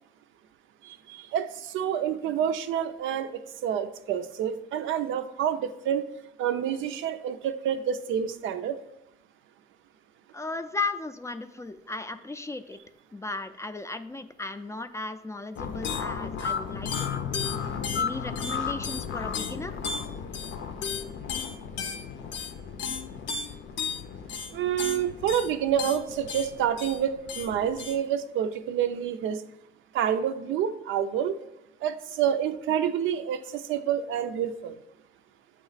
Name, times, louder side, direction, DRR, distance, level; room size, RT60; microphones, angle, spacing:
voice 1, 0.8-6.0 6.4-8.8 24.5-29.4 29.9-31.4 31.8-34.8, right 9 dB, 80° right, 10 dB, 0.4 m, -28 dB
voice 2, 10.3-12.8 13.1-17.2 18.0-19.8, left 3 dB, 15° left, 10 dB, 0.3 m, -36 dB
sound 1, 15.6-28.0, left 6 dB, 70° left, 0.6 m, -33 dB
7.7 x 3.0 x 4.0 m, 0.86 s
cardioid pair, 90°, 20 cm